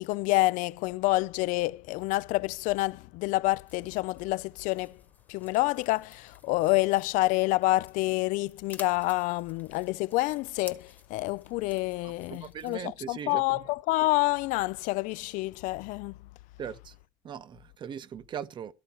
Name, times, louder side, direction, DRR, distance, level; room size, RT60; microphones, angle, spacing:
voice 1, 0.0-5.0 5.3-16.2, left 20 dB, 80° left, 0.4 m, -28 dB
sound 1, 3.6-12.7, left 3 dB, 15° left, 1.1 m, -53 dB
voice 2, 12.3-13.6 16.6-16.9 17.2-18.7, right 8 dB, 35° right, 0.8 m, -39 dB
13.0 x 4.6 x 5.7 m
cardioid pair, 150°, 13 cm